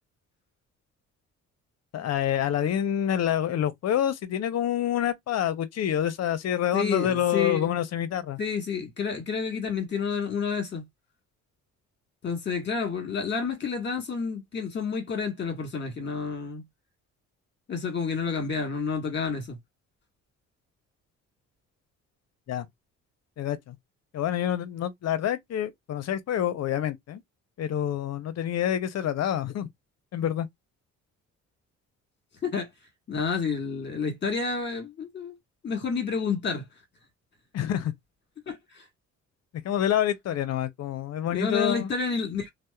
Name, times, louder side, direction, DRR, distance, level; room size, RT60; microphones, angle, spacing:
voice 1, 1.9-8.4 22.5-22.7 23.4-23.8 24.1-27.2 27.6-29.7 30.1-30.5 37.5-37.9 39.6-41.9, left 10 dB, 60° left, 0.6 m, -27 dB
voice 2, 6.7-7.7 8.4-10.8 12.2-16.6 17.7-19.6 32.4-32.7 33.1-35.3 35.6-36.6 38.5-38.8 41.3-42.5, left 5 dB, 35° left, 1.3 m, -29 dB
2.8 x 2.0 x 2.2 m
cardioid pair, 90°, 30 cm